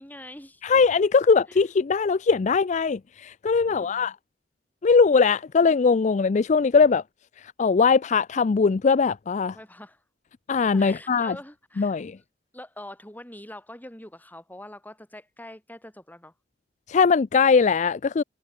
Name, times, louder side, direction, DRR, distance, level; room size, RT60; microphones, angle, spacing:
voice 1, 0.0-0.6 1.5-1.6 3.6-4.1 9.5-10.0 10.7-12.2 12.5-16.3, left 1 dB, 10° left, 5.0 m, -44 dB
voice 2, 0.6-4.2 4.8-7.0 7.4-9.6 10.5-11.4 11.8-12.2 16.9-18.2, left 5 dB, 40° left, 0.4 m, -21 dB
head